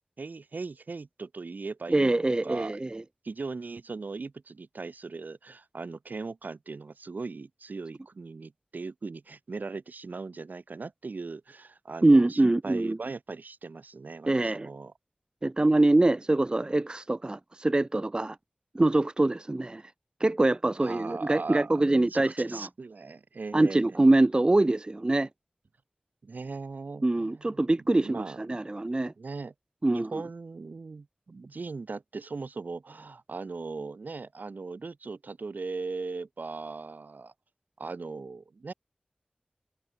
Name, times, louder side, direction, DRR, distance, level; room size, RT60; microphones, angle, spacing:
voice 1, 0.2-2.8 3.2-14.9 20.8-23.8 26.2-27.6 27.9-28.4 29.2-29.5 29.9-37.3 37.8-38.7, right 4 dB, 80° right, 5.5 m, -39 dB
voice 2, 1.9-3.0 12.0-13.0 14.3-14.7 15.4-18.4 18.7-19.8 20.2-22.7 23.5-25.3 27.0-29.1 29.8-30.2, right 2 dB, 30° right, 0.6 m, -24 dB
wide cardioid pair, 70°, 3 cm